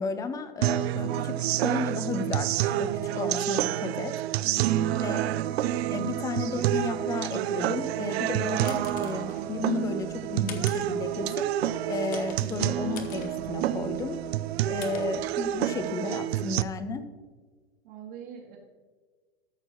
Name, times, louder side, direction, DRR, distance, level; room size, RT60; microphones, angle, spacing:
voice 1, 0.0-4.1 5.0-5.2 5.9-11.4 11.9-14.2 14.7-17.1, left 4 dB, 10° left, 11 dB, 0.4 m, -33 dB
sound 1, 0.6-16.6, right 12 dB, 75° right, 0.5 m, -28 dB
voice 2, 4.4-4.9 17.8-18.6, right 8 dB, 55° right, -5 dB, 1.8 m, -43 dB
sound 2, 8.1-15.9, left 5 dB, 25° left, 0.9 m, -47 dB
13.5 x 6.2 x 2.9 m, 1.5 s
hypercardioid pair, 135°, 32 cm